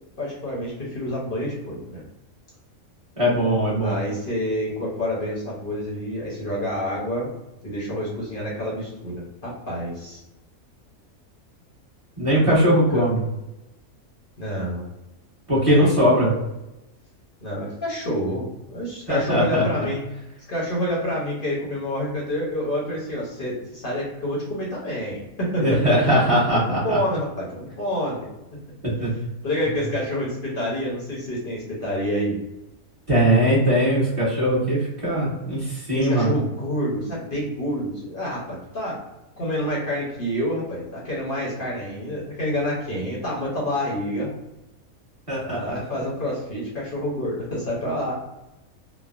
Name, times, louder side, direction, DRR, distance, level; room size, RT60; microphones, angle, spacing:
voice 1, 0.2-2.0 3.8-7.3 7.6-10.2 12.9-13.1 14.4-14.9 15.7-15.8 16.0-16.1 17.4-20.0 20.5-26.1 26.7-28.3 29.4-32.4 35.9-39.0 39.4-44.3 45.4-48.1, equal, 50° left, -5 dB, 0.8 m, -28 dB
voice 2, 3.2-4.0 12.2-13.2 15.5-16.3 19.1-19.9 25.6-27.0 28.8-29.1 33.1-36.3 45.3-45.6, equal, 25° right, -8 dB, 1.1 m, -20 dB
3.1 x 2.0 x 2.4 m, 0.94 s
omnidirectional pair, 1.5 m